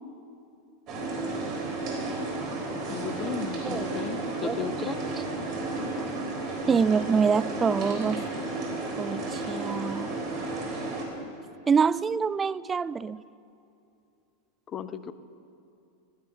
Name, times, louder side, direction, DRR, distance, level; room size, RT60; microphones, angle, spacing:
sound 1, 0.9-11.0, right 2 dB, 45° right, 3.6 m, -32 dB
voice 1, 2.9-5.0 6.5-6.6 14.7-15.1, left 8 dB, 30° left, 13 dB, 0.7 m, -35 dB
voice 2, 6.7-8.2 9.0-10.1 11.7-13.2, right 6 dB, 20° right, 18 dB, 0.3 m, -25 dB
15.5 x 12.0 x 5.5 m, 2.6 s
figure-of-eight pair, 90°, 0 cm